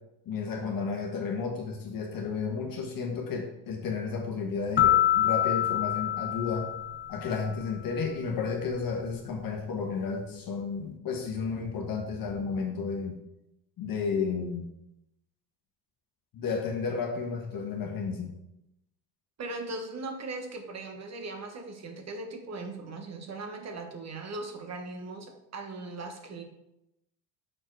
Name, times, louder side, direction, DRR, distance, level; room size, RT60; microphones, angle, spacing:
voice 1, 0.2-6.7 7.1-13.2 13.8-14.7 16.3-18.3, left 5 dB, 45° left, 1 dB, 1.3 m, -32 dB
sound 1, 4.8-7.5, left 12 dB, 25° left, 0.5 m, -26 dB
voice 2, 19.4-26.4, right 2 dB, 30° right, 5 dB, 1.2 m, -39 dB
6.5 x 4.4 x 4.7 m, 0.87 s
supercardioid pair, 110°, 49 cm